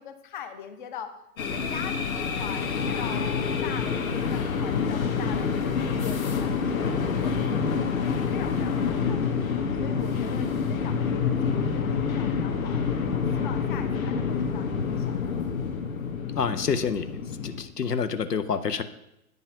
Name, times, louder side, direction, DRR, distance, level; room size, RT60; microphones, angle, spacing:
voice 1, 0.0-7.7 8.0-9.3 9.8-15.1, left 8 dB, 30° left, 9 dB, 0.8 m, -42 dB
sound 1, 1.4-17.6, left 6 dB, 60° left, 1.2 m, -27 dB
voice 2, 16.4-17.1 17.4-18.8, left 6 dB, 80° left, 11 dB, 0.7 m, -27 dB
9.2 x 5.5 x 5.5 m, 0.84 s
figure-of-eight pair, 120°, 47 cm